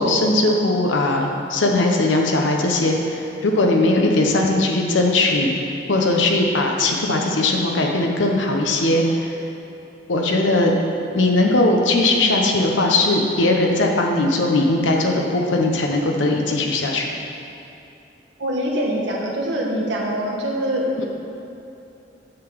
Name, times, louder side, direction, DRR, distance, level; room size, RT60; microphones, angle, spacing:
voice 1, 0.0-5.5 5.9-9.3 10.1-10.7 11.1-17.1 21.0-21.1, left 2 dB, 85° left, 1 dB, 0.8 m, -19 dB
voice 2, 18.4-21.0, equal, 75° right, -2 dB, 1.3 m, -24 dB
9.0 x 3.9 x 6.8 m, 2.8 s
head